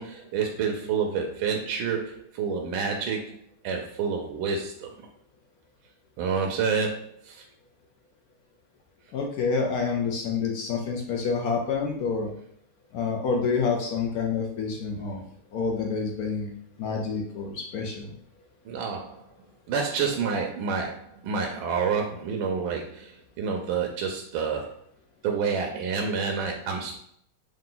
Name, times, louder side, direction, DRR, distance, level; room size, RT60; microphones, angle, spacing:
voice 1, 0.0-3.3 3.6-4.9 6.2-7.4 18.7-19.2 19.7-24.7 25.2-27.0, right 5 dB, 80° right, 2 dB, 1.3 m, -28 dB
voice 2, 9.1-12.3 12.9-15.2 15.5-16.5 16.8-18.1, left 5 dB, 70° left, 0 dB, 0.8 m, -28 dB
3.8 x 2.8 x 3.7 m, 0.67 s
omnidirectional pair, 2.2 m